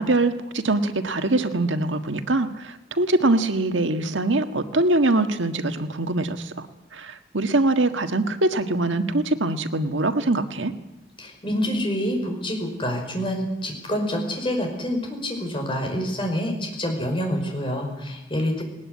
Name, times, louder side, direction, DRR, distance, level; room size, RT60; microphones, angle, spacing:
voice 1, 0.0-6.7 6.9-10.7, right 2 dB, 90° right, 8 dB, 1.6 m, -23 dB
voice 2, 11.2-18.6, equal, 25° left, 2 dB, 5.5 m, -27 dB
20.0 x 19.5 x 9.7 m, 0.95 s
head